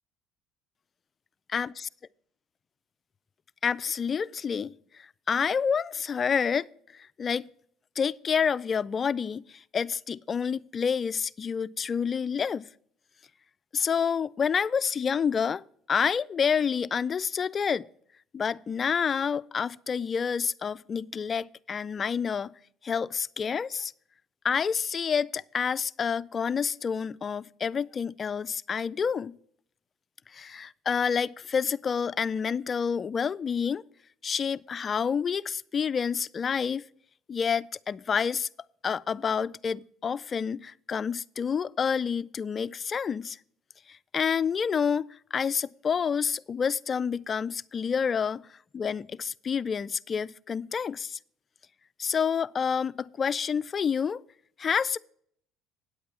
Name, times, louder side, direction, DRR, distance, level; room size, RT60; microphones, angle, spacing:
voice 1, 1.5-1.9 3.6-7.5 8.0-12.6 13.7-15.6 15.9-17.9 18.3-22.5 22.8-23.9 24.4-29.4 30.3-33.8 34.2-36.8 37.3-38.5 38.8-43.4 43.9-48.4 48.7-51.2 52.0-54.2 54.6-55.0, left 6 dB, 35° left, 0.3 m, -28 dB
9.3 x 8.3 x 4.3 m
supercardioid pair, 95°, 0 cm